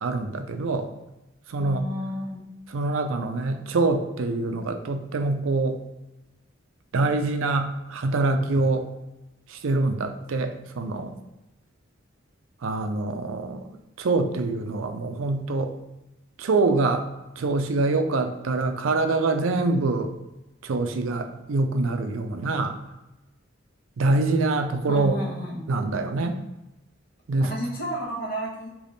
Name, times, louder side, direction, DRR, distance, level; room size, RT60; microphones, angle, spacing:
voice 1, 0.0-0.9 1.5-1.8 2.7-5.8 6.9-8.8 9.5-11.1 12.6-13.6 14.0-15.7 16.4-17.1 17.4-20.1 20.6-22.8 24.0-25.2 25.7-26.4 27.3-27.5, right 3 dB, 85° right, 7 dB, 0.5 m, -25 dB
voice 2, 1.6-2.5 24.9-25.6 27.4-28.7, equal, 50° left, -3 dB, 1.1 m, -32 dB
3.5 x 3.0 x 3.9 m, 0.98 s
head